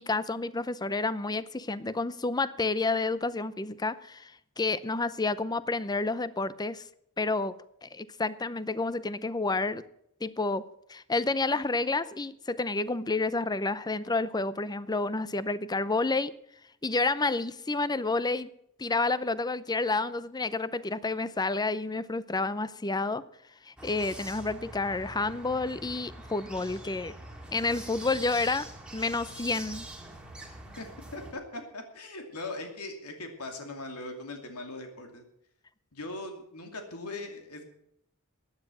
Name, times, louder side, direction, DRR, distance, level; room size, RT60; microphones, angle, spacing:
voice 1, 0.0-4.3 4.6-6.8 7.2-7.5 7.8-9.8 10.2-10.6 10.9-16.3 16.8-18.5 18.8-23.2 23.6-27.1 27.5-28.7 28.9-29.9, left 3 dB, 20° left, 16 dB, 0.6 m, -29 dB
sound 1, 23.8-31.3, right 1 dB, 5° right, 2.1 m, -44 dB
voice 2, 31.1-35.2 35.9-37.6, left 2 dB, 90° left, 4 dB, 2.6 m, -40 dB
15.5 x 9.9 x 6.2 m, 0.73 s
head